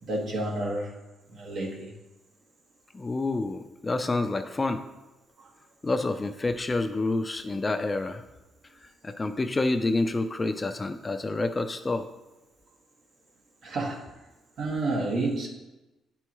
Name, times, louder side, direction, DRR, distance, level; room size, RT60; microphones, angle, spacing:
voice 1, 0.0-0.9 1.3-2.0 5.4-5.5 13.6-14.0 14.6-15.5, right 2 dB, 65° right, 0 dB, 1.5 m, -30 dB
voice 2, 2.9-4.8 5.8-8.2 8.8-12.1, left 2 dB, 25° left, 8 dB, 0.5 m, -28 dB
9.8 x 4.6 x 3.0 m, 1.0 s
cardioid pair, 90°, 0 cm